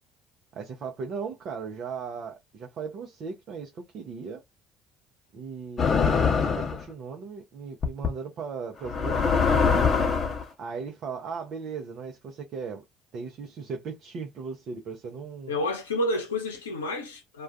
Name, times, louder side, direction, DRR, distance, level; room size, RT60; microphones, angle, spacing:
voice 1, 0.5-4.4 5.3-9.9 10.6-12.8 13.1-15.6, right 5 dB, 50° right, 0.6 m, -37 dB
sound 1, 5.8-6.8 7.8-8.1 8.8-10.4, left 5 dB, 40° left, 0.7 m, -23 dB
voice 2, 15.5-17.4, left 1 dB, 85° left, 0.7 m, -29 dB
2.3 x 2.2 x 2.4 m
figure-of-eight pair, 55°, 0 cm